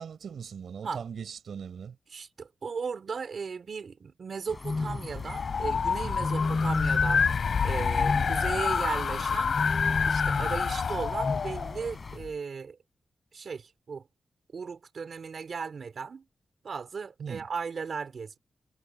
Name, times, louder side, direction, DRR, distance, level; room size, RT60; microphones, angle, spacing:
voice 1, 0.0-2.0 6.0-6.3 17.2-17.5, right 7 dB, 80° right, 5.3 m, -40 dB
voice 2, 2.1-7.3 7.6-9.6 10.0-12.8 13.3-14.0 14.5-16.2 16.6-18.4, right 5 dB, 55° right, 4.7 m, -36 dB
sound 1, 4.5-12.2, left 3 dB, 30° left, 6.5 m, -33 dB
sound 2, 5.1-12.3, left 6 dB, 65° left, 3.8 m, -28 dB
wide cardioid pair, 125°, 0 cm